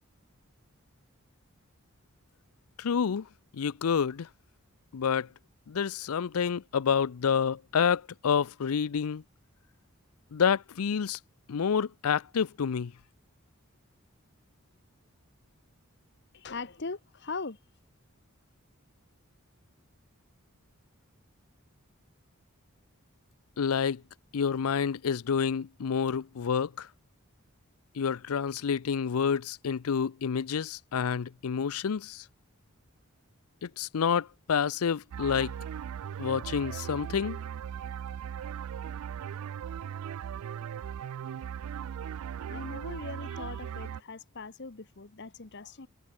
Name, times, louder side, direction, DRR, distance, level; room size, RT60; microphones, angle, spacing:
voice 1, 2.8-3.3 3.5-4.3 4.9-5.3 5.7-9.2 10.3-11.2 11.5-12.9 23.6-24.0 24.3-26.9 28.0-32.2 33.6-35.5 36.2-37.4, left 6 dB, 80° left, 0.5 m, -28 dB
voice 2, 16.3-17.6 42.5-45.9, left 4 dB, 50° left, 1.1 m, -40 dB
sound 1, 35.1-44.0, right 8 dB, 80° right, 0.3 m, -38 dB
head